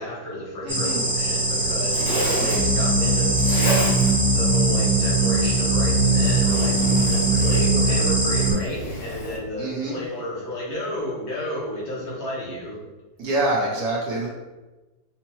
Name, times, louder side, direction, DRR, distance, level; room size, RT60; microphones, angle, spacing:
voice 1, 0.0-3.9 4.3-12.8, left 1 dB, 85° left, -6 dB, 2.0 m, -32 dB
voice 2, 0.6-1.1 9.6-10.0 13.2-14.3, right 2 dB, 60° right, -4 dB, 1.2 m, -25 dB
sound 1, 0.7-8.5, right 2 dB, ahead, 1.0 m, -24 dB
Zipper (clothing), 1.2-9.4, equal, 50° left, 1.0 m, -32 dB
sound 2, 2.5-8.5, right 2 dB, 30° right, 1.0 m, -22 dB
5.1 x 2.1 x 3.0 m, 1.2 s
omnidirectional pair, 2.0 m